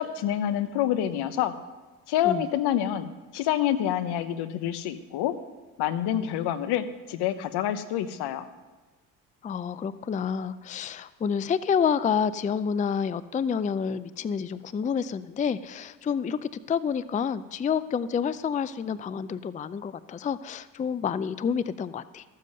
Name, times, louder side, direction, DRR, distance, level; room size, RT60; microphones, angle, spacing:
voice 1, 0.0-1.5 2.1-5.3 5.8-8.5, left 11 dB, 75° left, 12 dB, 1.0 m, -27 dB
voice 2, 9.4-22.2, left 7 dB, 20° left, 16 dB, 0.4 m, -28 dB
14.0 x 7.4 x 6.5 m, 1.2 s
supercardioid pair, 75°, 40 cm